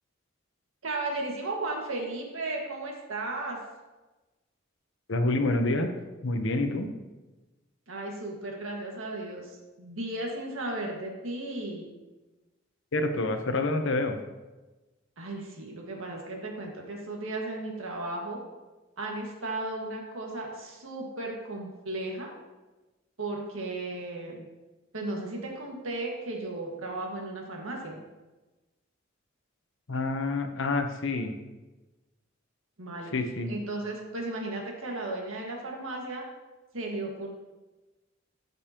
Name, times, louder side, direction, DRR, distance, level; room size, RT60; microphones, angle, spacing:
voice 1, 0.8-3.6 7.9-11.9 15.2-18.4 19.0-22.3 23.2-24.5 24.9-28.0 32.8-33.1 33.4-36.2 36.7-37.3, right 2 dB, 85° right, 0 dB, 1.7 m, -35 dB
voice 2, 5.1-5.9 6.2-6.9 12.9-14.2 29.9-31.3 33.1-33.5, left 2 dB, 65° left, 6 dB, 0.9 m, -27 dB
13.5 x 5.3 x 2.9 m, 1.1 s
head